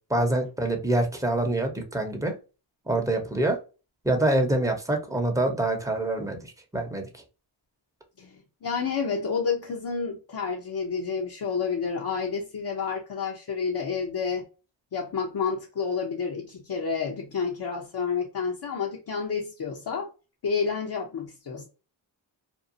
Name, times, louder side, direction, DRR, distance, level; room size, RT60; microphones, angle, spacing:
voice 1, 0.1-2.3 2.9-3.6 4.0-7.1, right 1 dB, 5° right, 0.8 m, -25 dB
voice 2, 8.6-14.4 14.9-20.1 20.4-21.7, left 5 dB, 50° left, 0.8 m, -29 dB
2.7 x 2.3 x 2.6 m
cardioid pair, 50°, 47 cm